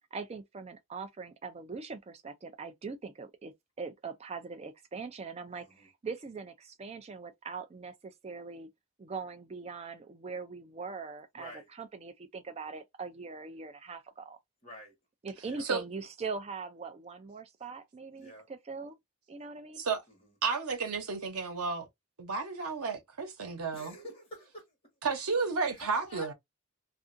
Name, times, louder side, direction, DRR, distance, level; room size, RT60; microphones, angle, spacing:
voice 1, 0.1-8.7 9.0-14.4 15.2-19.0 19.3-19.8, right 4 dB, 30° right, 0.3 m, -42 dB
voice 2, 11.3-11.7 14.6-14.9 15.5-15.6 18.2-18.5 23.7-24.6 25.8-26.3, equal, 25° left, 1.3 m, -47 dB
voice 3, 20.4-21.9 22.2-24.0 25.0-26.3, right 4 dB, 90° right, 0.9 m, -32 dB
2.6 x 2.5 x 2.5 m
head